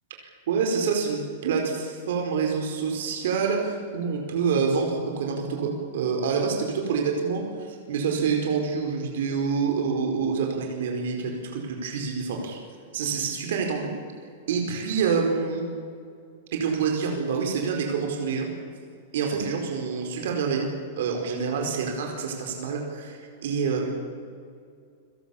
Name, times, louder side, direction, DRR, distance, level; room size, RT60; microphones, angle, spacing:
voice 1, 0.2-12.6 12.9-13.9 14.5-15.6 16.5-18.5 19.1-20.7 21.0-23.9, right 5 dB, 65° right, 2 dB, 4.8 m, -27 dB
29.0 x 18.0 x 7.3 m, 2.2 s
supercardioid pair, 175°, 0 cm